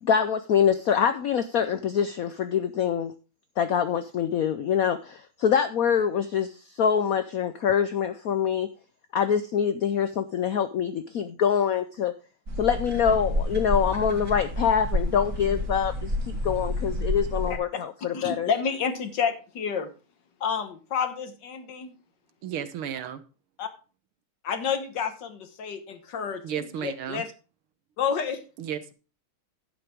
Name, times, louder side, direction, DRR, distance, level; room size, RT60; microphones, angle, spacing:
voice 1, 0.0-3.1 3.6-8.7 9.1-12.1 12.6-18.5, left 8 dB, 85° left, 10 dB, 0.7 m, -25 dB
sound 1, 12.5-17.6, left 1 dB, 40° right, 3.2 m, -29 dB
voice 2, 18.1-19.9 20.4-21.9 23.6-23.7 24.4-27.3 28.0-28.4, left 6 dB, 60° left, 9 dB, 1.7 m, -29 dB
voice 3, 22.4-23.2 26.4-27.2 28.6-28.9, right 9 dB, 85° right, 11 dB, 1.9 m, -33 dB
11.5 x 8.8 x 3.5 m, 0.34 s
omnidirectional pair, 2.3 m